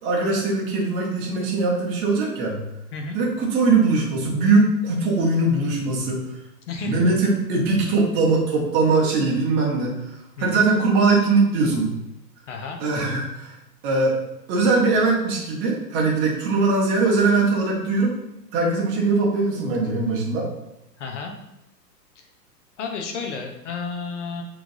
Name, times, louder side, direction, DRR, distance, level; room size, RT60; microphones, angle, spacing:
voice 1, 0.0-2.6 3.1-6.2 6.8-9.9 10.4-11.9 12.8-13.5 13.8-14.1 14.5-18.1 18.5-20.5, right 3 dB, 20° right, -2 dB, 0.8 m, -21 dB
voice 2, 6.7-7.0 10.4-10.7 12.5-12.8 21.0-21.3 22.2-22.3 22.8-24.4, left 4 dB, 45° left, 3 dB, 0.9 m, -32 dB
6.0 x 3.3 x 2.7 m, 0.86 s
figure-of-eight pair, 110°, 50 cm